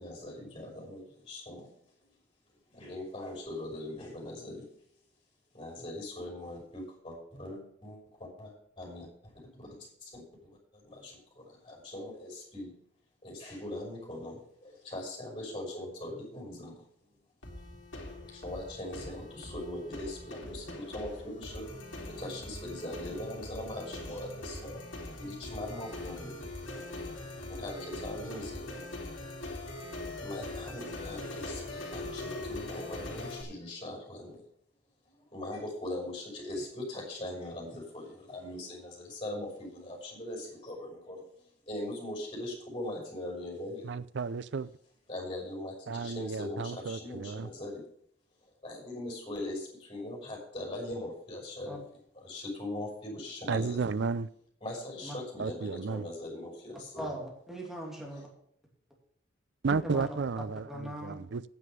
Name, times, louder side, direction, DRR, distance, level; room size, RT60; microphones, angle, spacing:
voice 1, 0.0-1.7 2.7-4.7 5.5-12.7 13.2-16.8 18.3-21.7 22.1-24.9 25.2-26.5 27.5-28.7 30.2-34.4 35.3-43.9 45.1-47.8 48.6-51.8 52.1-53.8 54.6-57.1, left 1 dB, 30° left, 6.0 m, -41 dB
sound 1, 17.4-33.4, left 1 dB, 80° left, 2.8 m, -42 dB
voice 2, 43.8-44.7 45.9-47.5 53.5-54.3 55.4-56.1 59.6-61.4, right 4 dB, 65° right, 0.5 m, -33 dB
voice 3, 57.0-58.3 59.8-60.0 60.7-61.2, right 1 dB, ahead, 2.7 m, -39 dB
9.5 x 7.7 x 6.8 m
head